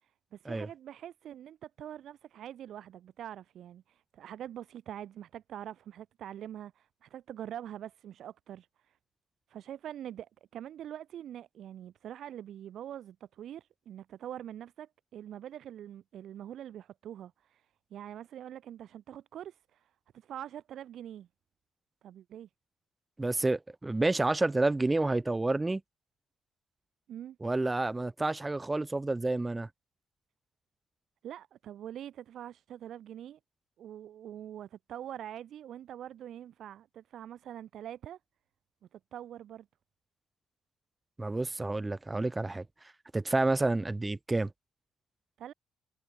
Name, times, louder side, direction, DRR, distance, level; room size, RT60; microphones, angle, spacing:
voice 1, 0.0-9.0 9.5-21.3 22.0-22.5 27.1-27.4 31.2-33.4 33.8-38.2 38.9-39.7 45.4-45.5, right 11 dB, 70° right, 1.0 m, -44 dB
voice 2, 23.2-25.8 27.4-29.7 41.2-42.6 43.1-44.5, right 2 dB, 15° right, 0.8 m, -29 dB
cardioid pair, 90°, 0 cm